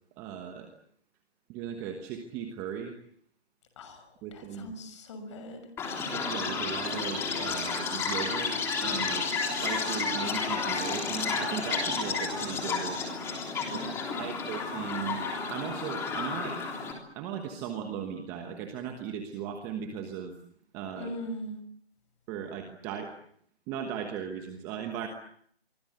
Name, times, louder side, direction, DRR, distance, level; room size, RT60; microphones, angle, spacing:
voice 1, 0.2-0.7 1.5-2.9 4.2-4.7 6.0-13.0 13.7-13.8 14.2-15.2 15.5-16.6 17.1-20.3 20.7-21.1 22.3-23.1 23.7-25.1, right 8 dB, 10° right, 5 dB, 1.2 m, -37 dB
voice 2, 3.8-5.6 13.6-14.4 21.0-21.6, equal, 30° left, 9 dB, 6.4 m, -41 dB
Chirp tweet, 5.8-16.9, left 4 dB, 10° left, 3.5 m, -31 dB
28.0 x 24.5 x 7.9 m, 0.66 s
figure-of-eight pair, 160°, 32 cm